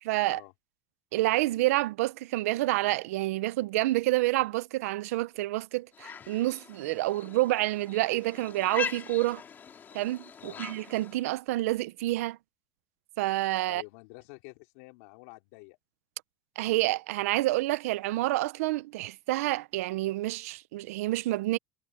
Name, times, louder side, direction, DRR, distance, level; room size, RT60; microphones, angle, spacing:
voice 1, 0.0-0.4 1.1-9.4 9.9-12.4 13.2-13.8 16.6-21.6, right 18 dB, 90° right, 0.8 m, -28 dB
sound 1, 5.9-11.2, left 7 dB, 25° left, 3.7 m, -41 dB
voice 2, 13.7-15.8, left 26 dB, 75° left, 3.6 m, -49 dB
supercardioid pair, 140°, 8 cm